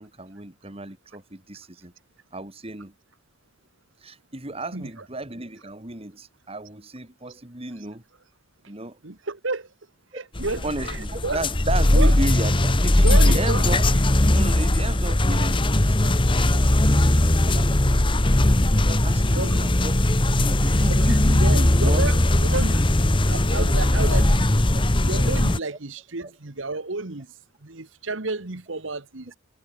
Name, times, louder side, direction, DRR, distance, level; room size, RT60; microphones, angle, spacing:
voice 1, 0.0-1.9 2.3-2.9 4.0-8.0 8.7-9.0 10.1-10.2 10.6-14.0 14.3-18.6 18.9-20.0 20.4-22.4 22.7-22.8, right 2 dB, 30° right, 2.5 m, -34 dB
voice 2, 9.0-9.7 10.1-11.0 11.2-11.4 11.9-12.1 13.0-13.6 19.3-19.6 20.9-21.1 21.4-22.2 22.5-22.8 23.3-24.5 25.0-27.3 27.6-29.4, right 3 dB, 65° right, 1.6 m, -30 dB
sound 1, 10.4-25.6, left 1 dB, 25° left, 1.2 m, -19 dB
head